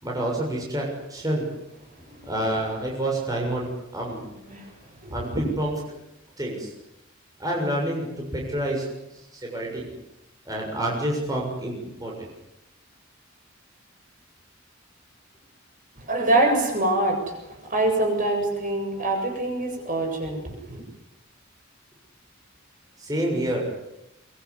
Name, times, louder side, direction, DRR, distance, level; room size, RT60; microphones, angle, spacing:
voice 1, 0.0-1.5 2.2-4.2 5.1-6.0 6.4-6.7 7.4-8.8 9.3-9.9 10.5-12.3 23.0-23.8, right 1 dB, 20° right, -2 dB, 7.0 m, -28 dB
voice 2, 5.0-5.5 16.1-17.2 17.7-20.8, right 2 dB, 40° right, 3 dB, 7.8 m, -24 dB
24.5 x 24.0 x 9.9 m, 0.87 s
head